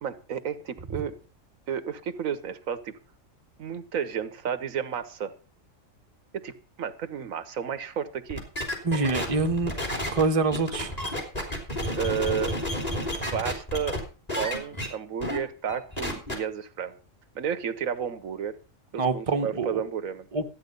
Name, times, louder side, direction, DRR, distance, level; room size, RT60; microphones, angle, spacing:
voice 1, 0.0-1.2 1.7-2.9 3.6-5.3 6.3-6.5 6.8-8.4 12.0-12.5 13.3-14.0 14.3-16.9 17.3-18.6 18.9-20.3, right 7 dB, 85° right, 1.4 m, -32 dB
sound 1, 8.3-14.0 14.3-14.9 15.2-15.4 15.7-16.3, equal, 30° left, 3.4 m, -31 dB
voice 2, 8.8-9.7 10.1-11.0 18.9-19.8 20.3-20.4, right 3 dB, 30° right, 1.0 m, -25 dB
13.5 x 9.1 x 5.3 m
omnidirectional pair, 1.4 m